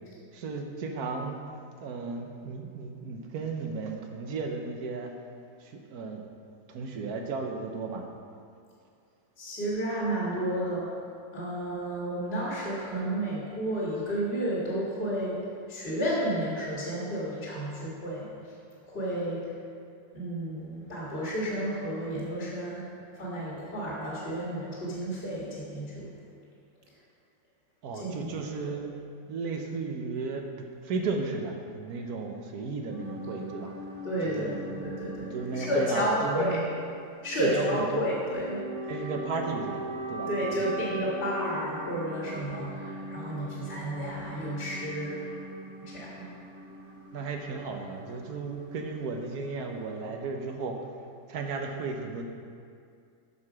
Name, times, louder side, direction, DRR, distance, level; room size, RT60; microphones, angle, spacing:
voice 1, 0.3-1.4 1.8-5.1 5.6-6.2 6.7-8.1 27.8-28.9 29.3-33.7 34.2-34.6 35.2-36.6 37.3-38.1 38.9-40.3 40.6-40.8 47.1-50.8 51.3-52.3, right 4 dB, 65° right, 3 dB, 1.1 m, -34 dB
voice 2, 9.4-10.9 11.3-15.4 15.7-18.5 18.8-19.5 20.1-22.8 23.1-26.0 27.9-28.3 34.0-35.3 35.5-36.6 37.2-38.6 38.9-39.0 40.3-45.4 45.8-46.3, equal, 35° left, -6 dB, 1.7 m, -31 dB
sound 1, 32.9-50.1, right 1 dB, 25° right, 0.7 m, -41 dB
8.4 x 4.8 x 6.0 m, 2.3 s
omnidirectional pair, 2.0 m